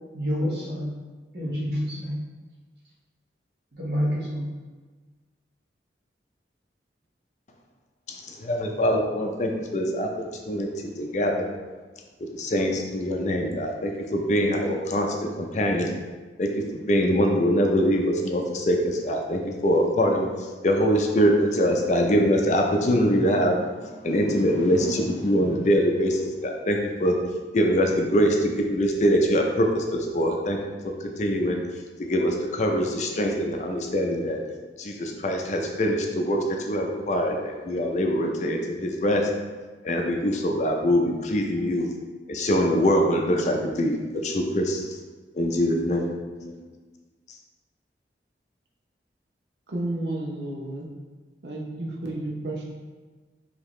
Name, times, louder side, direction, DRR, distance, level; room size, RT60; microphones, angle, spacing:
voice 1, 0.1-0.9 1.3-2.2 3.7-4.4, equal, 60° right, -6 dB, 1.4 m, -28 dB
voice 2, 8.1-10.1 10.5-11.5 12.3-15.9 16.4-20.3 20.6-23.6 24.0-27.2 27.5-30.6 31.0-31.6 32.1-34.4 34.8-39.3 39.8-41.9 42.3-44.0 44.2-45.0 45.3-46.1 46.4-46.6, equal, 40° left, 2 dB, 0.4 m, -23 dB
voice 3, 49.7-50.9 51.4-52.6, right 1 dB, 80° right, -2 dB, 0.8 m, -31 dB
4.8 x 2.8 x 3.1 m, 1.3 s
head